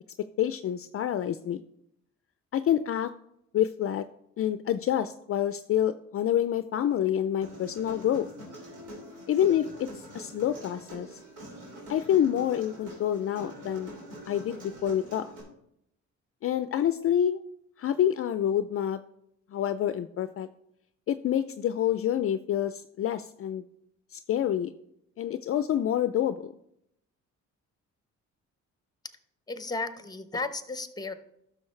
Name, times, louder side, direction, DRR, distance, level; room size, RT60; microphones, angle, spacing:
voice 1, 0.4-1.6 2.5-3.1 3.5-4.0 4.4-8.3 9.3-11.1 11.9-13.9 14.3-15.2 16.4-17.4 17.8-19.0 19.5-20.5 21.1-23.6 24.1-24.7 25.2-26.5, left 10 dB, 50° left, 11 dB, 0.4 m, -27 dB
Human voice, 7.4-15.4, equal, 90° right, 3.3 m, -45 dB
voice 2, 29.5-31.1, left 3 dB, 15° left, 10 dB, 0.8 m, -34 dB
11.5 x 6.3 x 3.2 m, 0.76 s
cardioid pair, 90°, 30 cm